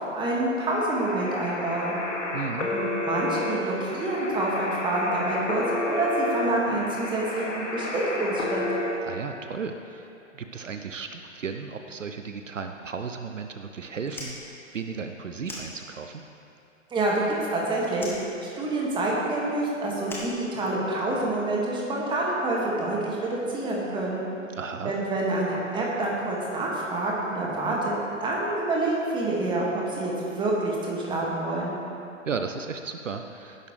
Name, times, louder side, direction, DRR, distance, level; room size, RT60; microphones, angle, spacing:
voice 1, 0.1-1.9 2.7-8.6 16.9-17.2 17.5-24.2 24.8-28.0 28.2-31.8, right 2 dB, 10° right, -4 dB, 2.0 m, -27 dB
sound 1, 0.7-8.9, left 2 dB, 65° left, 2.3 m, -31 dB
voice 2, 2.3-2.7 9.0-16.2 24.5-24.9 32.3-33.7, right 5 dB, 70° right, 6 dB, 0.8 m, -35 dB
Fire, 14.0-16.3 16.6-17.6 17.9-21.1, left 1 dB, 5° left, 1.4 m, -42 dB
19.0 x 10.5 x 3.3 m, 2.7 s
figure-of-eight pair, 115°, 39 cm